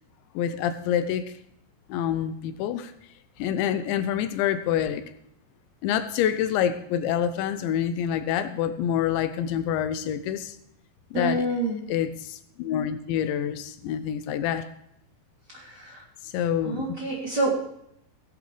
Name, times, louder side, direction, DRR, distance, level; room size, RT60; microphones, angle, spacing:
voice 1, 0.4-1.3 1.9-2.9 3.4-5.0 5.8-10.6 11.1-11.4 11.9-14.7 16.2-16.9, left 9 dB, 80° left, 10 dB, 3.0 m, -27 dB
voice 2, 11.1-11.8 15.5-16.0 16.6-17.6, right 1 dB, 25° right, -4 dB, 2.8 m, -27 dB
17.0 x 11.0 x 3.3 m, 0.76 s
omnidirectional pair, 5.3 m